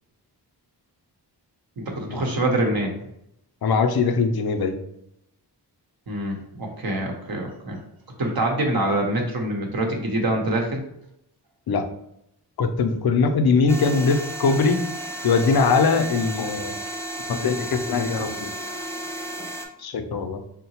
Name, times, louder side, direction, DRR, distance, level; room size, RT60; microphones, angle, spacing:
voice 1, 1.8-2.9 6.1-7.8 8.2-10.8, right 1 dB, 60° right, 2 dB, 0.8 m, -25 dB
voice 2, 3.6-4.8 11.7-11.9 12.6-14.9 15.2-16.7 17.3-18.5 19.8-20.4, left 4 dB, 60° left, 6 dB, 0.5 m, -21 dB
sound 1, 13.7-19.7, right 1 dB, 5° left, 0.4 m, -33 dB
3.7 x 2.1 x 2.8 m, 0.78 s
cardioid pair, 50°, 42 cm